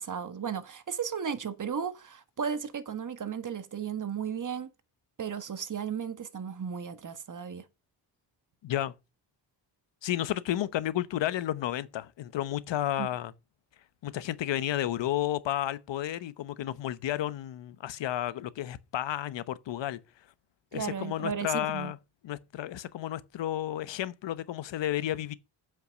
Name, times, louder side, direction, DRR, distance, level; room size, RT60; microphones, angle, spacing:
voice 1, 0.0-4.7 5.2-7.6 13.0-13.1 20.7-21.9, right 7 dB, 45° right, 1.4 m, -35 dB
voice 2, 8.6-8.9 10.0-13.3 14.0-20.0 20.7-22.0 22.2-25.3, left 12 dB, 75° left, 0.9 m, -32 dB
7.8 x 5.9 x 6.6 m
cardioid pair, 85°, 44 cm